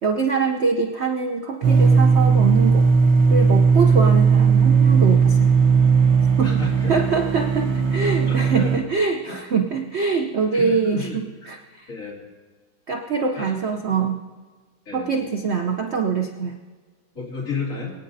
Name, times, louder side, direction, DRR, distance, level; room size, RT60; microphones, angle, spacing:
voice 1, 0.0-2.8 3.3-5.5 6.4-6.6 6.9-11.9 12.9-14.2 14.9-16.6, right 5 dB, 65° right, 3 dB, 0.6 m, -24 dB
sound 1, 1.6-8.8, right 5 dB, 45° right, 1.0 m, -17 dB
voice 2, 6.4-7.0 8.0-8.8 10.5-11.5 11.9-12.3 13.3-13.6 13.9-14.0 14.9-15.1 17.1-17.9, left 4 dB, 40° left, -5 dB, 2.9 m, -32 dB
23.0 x 9.4 x 2.7 m, 1.4 s
omnidirectional pair, 2.2 m